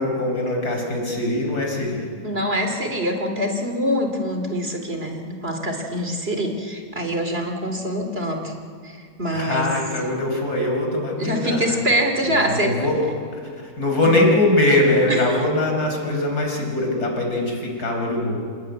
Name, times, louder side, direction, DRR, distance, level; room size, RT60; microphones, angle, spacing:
voice 1, 0.0-2.1 9.3-11.8 12.2-13.1 13.3-18.4, left 1 dB, 75° left, 1 dB, 5.4 m, -22 dB
voice 2, 2.2-8.5 8.8-9.7 11.2-12.7, equal, 40° right, 4 dB, 2.9 m, -24 dB
27.5 x 20.5 x 9.4 m, 2.2 s
omnidirectional pair, 1.6 m